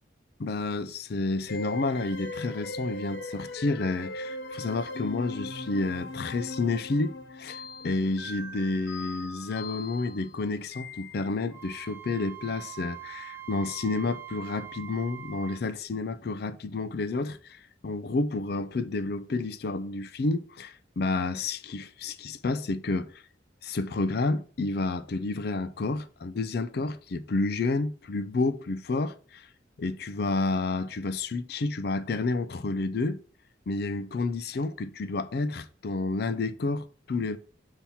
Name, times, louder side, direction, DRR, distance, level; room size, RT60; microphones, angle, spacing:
voice 1, 0.4-23.2 23.6-29.5 29.8-33.2 33.7-37.4, left 3 dB, 55° left, 0.4 m, -30 dB
sound 1, 1.5-11.6, left 1 dB, 85° left, 0.9 m, -39 dB
Wind instrument woodwind instrument, 11.5-15.6, right 12 dB, 15° right, 0.3 m, -43 dB
7.0 x 2.9 x 5.6 m
head